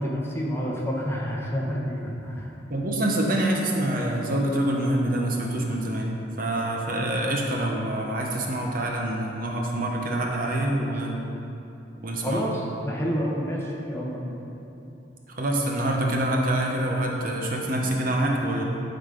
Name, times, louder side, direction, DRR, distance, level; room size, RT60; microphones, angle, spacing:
voice 1, 0.0-2.5 10.7-10.9 12.2-14.4, equal, 15° left, -3 dB, 1.1 m, -29 dB
voice 2, 2.7-6.1 6.4-11.1 12.0-12.4 15.4-18.6, right 1 dB, 50° right, 0 dB, 0.9 m, -26 dB
11.0 x 4.0 x 5.0 m, 2.8 s
head